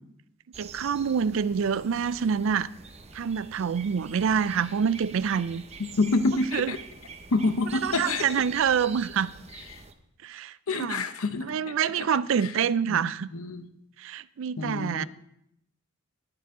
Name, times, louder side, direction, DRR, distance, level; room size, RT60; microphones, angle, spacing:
sound 1, 0.5-9.9, right 5 dB, 30° right, 0.7 m, -45 dB
voice 1, 0.6-2.7 3.1-5.6 6.5-6.7 7.8-9.3 10.2-11.0 11.4-13.3 14.0-15.1, right 7 dB, 60° right, 0.3 m, -26 dB
voice 2, 5.8-6.8 7.3-8.3 9.7-9.8 10.7-12.1 12.4-12.5 12.9-13.0 13.3-13.7 14.6-15.1, left 3 dB, 75° left, 0.8 m, -28 dB
18.5 x 6.8 x 3.7 m
head